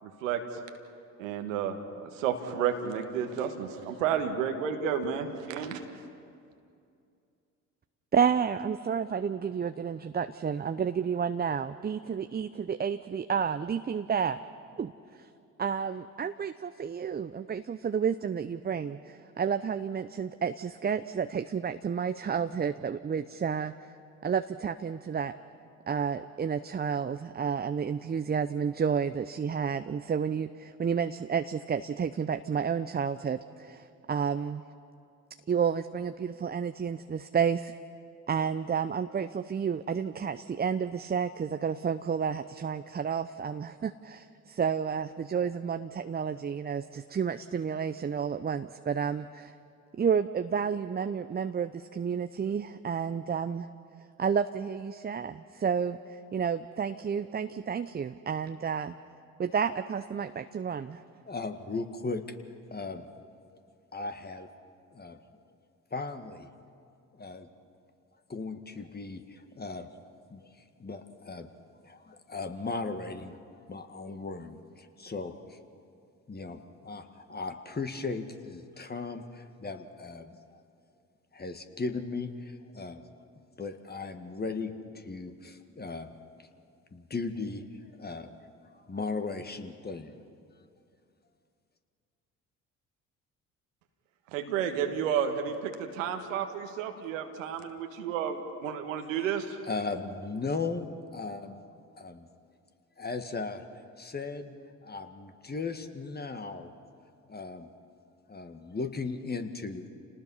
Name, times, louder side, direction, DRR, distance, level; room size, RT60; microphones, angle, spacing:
voice 1, 0.0-0.4 1.2-5.8 94.3-99.6, right 8 dB, 85° right, 6 dB, 1.6 m, -31 dB
voice 2, 8.1-14.4 14.8-15.3 15.6-23.7 24.2-25.3 25.9-34.6 35.5-37.7 38.3-49.5 49.9-53.7 54.2-58.9 59.4-61.0, right 7 dB, 25° right, 10 dB, 0.7 m, -31 dB
voice 3, 61.3-62.2 62.7-63.1 63.9-64.5 64.9-65.2 65.9-66.5 67.1-67.5 68.3-69.9 70.3-70.5 70.8-71.5 71.8-73.4 73.7-75.6 76.3-80.6 81.3-83.0 83.6-86.1 86.9-87.6 87.9-88.3 88.7-90.2 99.3-101.6 102.0-102.3 103.0-103.6 104.0-104.6 104.8-106.7 107.3-107.7 108.3-109.9, left 3 dB, 25° left, 7 dB, 1.8 m, -37 dB
29.0 x 19.0 x 5.6 m, 2.5 s
hypercardioid pair, 55°, 38 cm